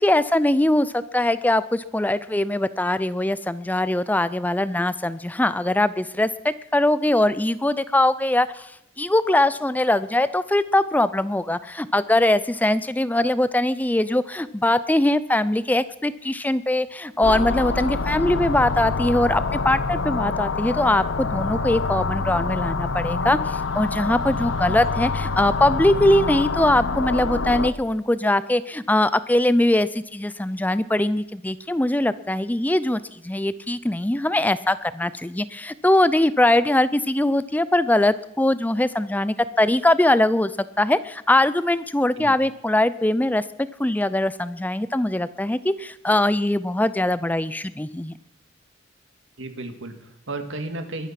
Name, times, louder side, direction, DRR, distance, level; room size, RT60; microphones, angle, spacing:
voice 1, 0.0-8.7 9.0-40.5 40.8-43.4 43.8-48.1, left 1 dB, 10° left, 15 dB, 0.5 m, -21 dB
sound 1, 17.2-27.7, left 4 dB, 85° left, 0.8 m, -26 dB
voice 2, 49.4-51.1, right 2 dB, 85° right, 7 dB, 2.0 m, -33 dB
22.0 x 9.1 x 5.9 m, 0.82 s
head